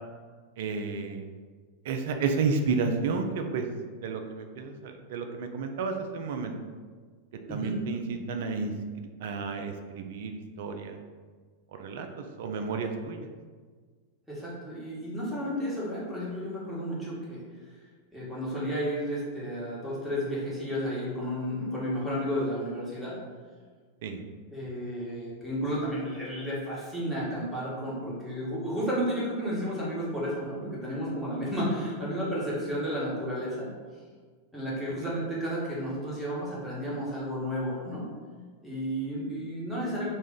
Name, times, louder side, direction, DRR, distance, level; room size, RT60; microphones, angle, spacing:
voice 1, 0.6-1.2 1.9-3.7 4.0-6.5 7.5-8.7 9.2-11.0 11.8-13.3 24.0-24.2, right 4 dB, 55° right, 5 dB, 0.3 m, -31 dB
voice 2, 7.5-7.8 14.3-17.4 18.1-23.2 24.5-33.7 34.5-38.0 38.6-40.1, equal, 5° right, -8 dB, 1.2 m, -32 dB
3.0 x 2.3 x 3.5 m, 1.5 s
figure-of-eight pair, 90°, 0 cm